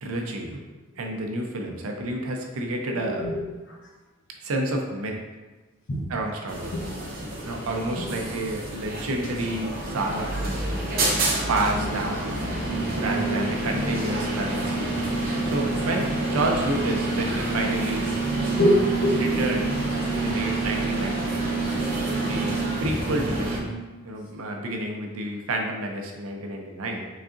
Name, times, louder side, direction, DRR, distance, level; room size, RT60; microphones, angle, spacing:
voice 1, 0.0-0.6 1.0-3.3 4.4-5.1 6.1-6.7 7.4-10.6 11.5-12.3 13.0-15.1 15.5-18.1 19.2-19.8 20.1-21.5 22.1-23.7 24.0-27.1, right 2 dB, 85° right, 1 dB, 0.6 m, -30 dB
voice 2, 2.9-3.8 5.9-6.1 6.7-6.9 8.0-8.1 14.5-14.6 18.6-19.4 21.2-21.3 22.5-22.6, equal, 60° left, -3 dB, 0.7 m, -26 dB
sound 1, 6.5-23.6, right 2 dB, 45° right, 0.7 m, -27 dB
3.9 x 3.5 x 2.6 m, 1.2 s
head